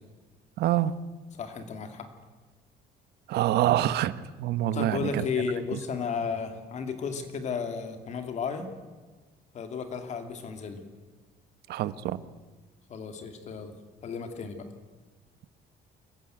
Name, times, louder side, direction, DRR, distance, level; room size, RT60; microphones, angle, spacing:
voice 1, 0.6-1.0 3.3-5.2 11.7-12.2, right 13 dB, 75° right, 15 dB, 1.0 m, -26 dB
voice 2, 1.4-2.1 4.7-8.7 9.5-10.8 12.9-13.7 14.0-14.6, left 5 dB, 45° left, 7 dB, 2.5 m, -33 dB
25.5 x 14.5 x 9.1 m, 1.3 s
cardioid pair, 165°, 17 cm